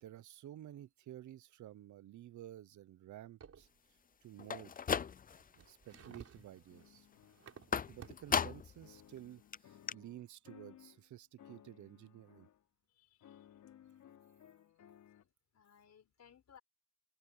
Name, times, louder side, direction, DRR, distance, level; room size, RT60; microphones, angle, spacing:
voice 1, 0.0-3.7 4.2-4.8 5.5-7.1 7.9-12.5, right 13 dB, 75° right, 0.9 m, -52 dB
sound 1, 3.4-3.8 5.3-8.4, right 7 dB, 55° right, 4.2 m, -57 dB
sound 2, 4.4-5.6 5.9-6.4 7.7-8.8 9.2-9.3 9.5-9.6 9.9-10.0, left 7 dB, 30° left, 0.5 m, -36 dB
sound 3, 6.7-8.5 8.8-11.0 11.4-12.6 13.2-15.2, left 10 dB, 75° left, 4.4 m, -61 dB
voice 2, 12.9-14.4 15.2-16.6, left 8 dB, 60° left, 5.2 m, -65 dB
cardioid pair, 80°, 30 cm